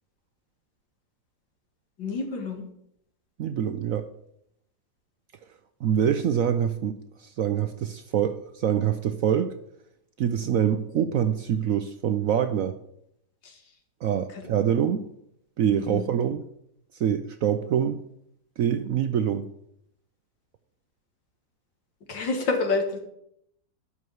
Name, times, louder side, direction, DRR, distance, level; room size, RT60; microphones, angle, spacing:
voice 1, 2.0-2.7 13.4-13.6 14.3-14.4 15.9-16.1 22.1-23.0, left 3 dB, 85° left, 2.5 m, -28 dB
voice 2, 3.4-4.1 5.8-9.6 10.2-12.8 14.0-15.1 15.6-16.4 16.9-18.0 18.6-19.5, right 9 dB, 65° right, 0.8 m, -25 dB
11.5 x 4.8 x 7.8 m
omnidirectional pair, 1.9 m